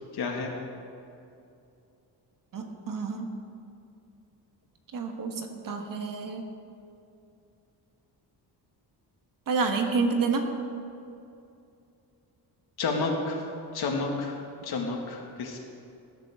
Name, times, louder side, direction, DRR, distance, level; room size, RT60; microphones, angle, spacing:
voice 1, 0.1-0.5 12.8-13.4 13.7-14.4 14.6-15.6, left 3 dB, 65° left, 1 dB, 2.1 m, -30 dB
voice 2, 2.5-3.3 4.9-6.5 9.5-10.5, right 4 dB, 50° right, 4 dB, 1.5 m, -29 dB
20.0 x 11.5 x 3.7 m, 2.6 s
wide cardioid pair, 155°, 41 cm